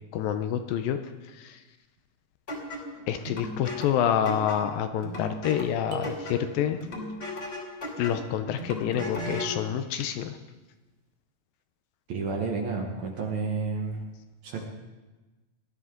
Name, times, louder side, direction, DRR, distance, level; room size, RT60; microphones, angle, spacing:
voice 1, 0.1-1.0 3.1-6.8 8.0-10.3, left 9 dB, 80° left, 8 dB, 2.3 m, -27 dB
sound 1, 2.5-9.6, left 1 dB, 30° left, 2.9 m, -37 dB
sound 2, 5.9-7.0, right 3 dB, 85° right, 3.2 m, -41 dB
voice 2, 12.1-14.0 14.4-14.6, right 4 dB, 60° right, 1 dB, 2.1 m, -30 dB
19.0 x 12.0 x 3.8 m, 1.2 s
omnidirectional pair, 4.4 m